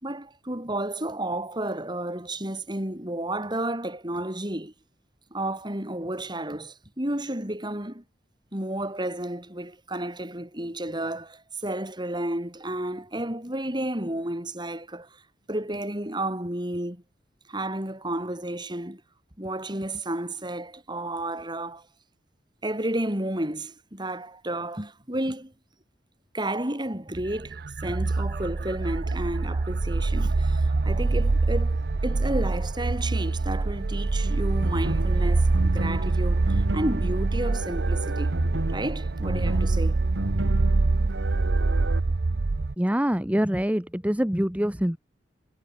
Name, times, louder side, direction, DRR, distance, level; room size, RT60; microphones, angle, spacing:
voice 1, 0.0-4.7 5.3-8.0 8.5-15.2 15.5-17.0 17.5-19.0 19.4-21.9 22.6-25.5 26.3-38.3 38.7-40.0, right 1 dB, 25° right, 5.4 m, -32 dB
sound 1, 27.1-42.7, right 3 dB, 60° right, 0.6 m, -25 dB
sound 2, 34.6-42.0, right 1 dB, 80° right, 2.3 m, -32 dB
voice 2, 42.8-45.0, equal, 10° right, 1.2 m, -25 dB
head